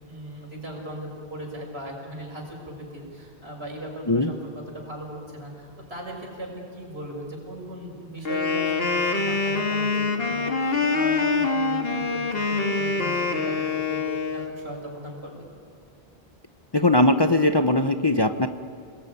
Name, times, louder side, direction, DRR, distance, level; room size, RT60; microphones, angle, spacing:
voice 1, 0.0-15.5, right 1 dB, 80° right, 0 dB, 6.3 m, -38 dB
Wind instrument woodwind instrument, 8.2-14.5, left 4 dB, 65° left, 2.1 m, -25 dB
voice 2, 16.7-18.5, left 1 dB, 25° left, 8 dB, 0.9 m, -20 dB
30.0 x 20.0 x 9.6 m, 2.4 s
omnidirectional pair, 1.1 m